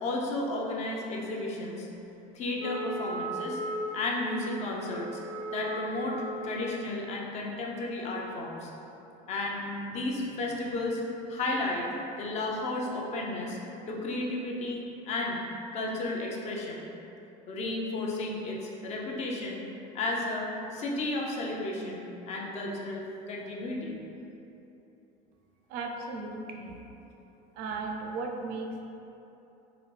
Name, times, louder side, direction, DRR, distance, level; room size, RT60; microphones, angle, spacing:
voice 1, 0.0-1.9 2.3-3.6 3.9-5.2 5.5-8.7 9.3-11.0 11.3-11.9 12.2-13.6 13.9-15.4 15.7-16.9 17.5-19.6 19.9-24.0, left 2 dB, 40° left, -2 dB, 0.6 m, -33 dB
Wind instrument woodwind instrument, 2.6-6.7, right 1 dB, 90° right, 0.8 m, -37 dB
voice 2, 25.7-26.8 27.6-28.8, right 3 dB, 65° right, 1 dB, 0.4 m, -36 dB
4.8 x 2.5 x 3.2 m, 3.0 s
cardioid pair, 145°, 18 cm